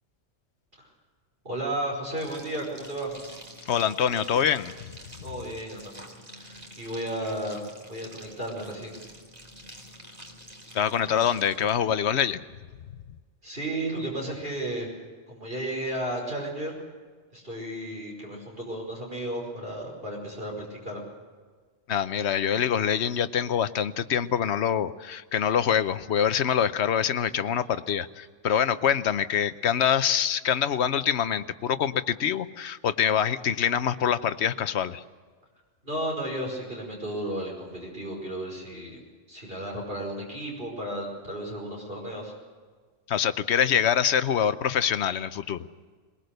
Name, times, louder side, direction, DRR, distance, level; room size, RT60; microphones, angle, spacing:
voice 1, 1.4-3.1 5.2-6.0 6.3-7.6 7.9-9.0 13.4-14.9 15.3-16.8 17.3-21.0 35.8-39.0 39.3-42.3, right 1 dB, 45° right, -2 dB, 5.4 m, -33 dB
sound 1, 2.1-11.8, equal, 30° right, 3.1 m, -47 dB
voice 2, 3.7-4.7 10.7-12.4 21.9-35.0 43.1-45.7, left 8 dB, 65° left, 12 dB, 1.0 m, -25 dB
22.0 x 21.5 x 6.6 m, 1.5 s
omnidirectional pair, 1.3 m